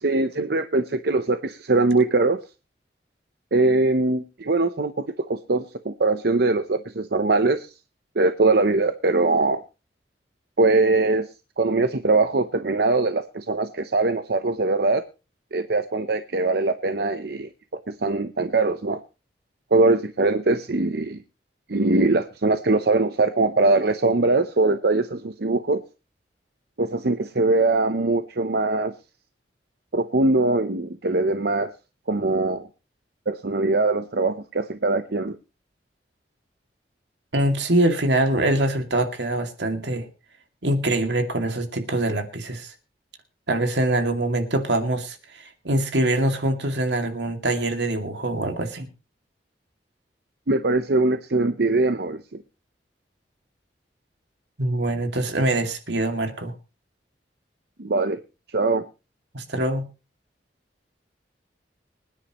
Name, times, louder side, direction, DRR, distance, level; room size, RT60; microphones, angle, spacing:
voice 1, 0.0-2.4 3.5-7.7 8.2-9.6 10.6-11.3 11.6-15.0 15.5-19.0 19.7-21.2 21.7-25.8 26.8-28.9 29.9-31.7 32.1-32.7 33.3-35.4 50.5-52.2 57.8-58.2 58.5-58.9, right 3 dB, 65° right, 10 dB, 0.8 m, -22 dB
voice 2, 37.3-40.1 40.6-42.7 43.5-48.9 54.6-56.5 59.3-59.8, right 1 dB, 80° right, 6 dB, 2.4 m, -24 dB
25.0 x 10.0 x 3.0 m, 0.31 s
head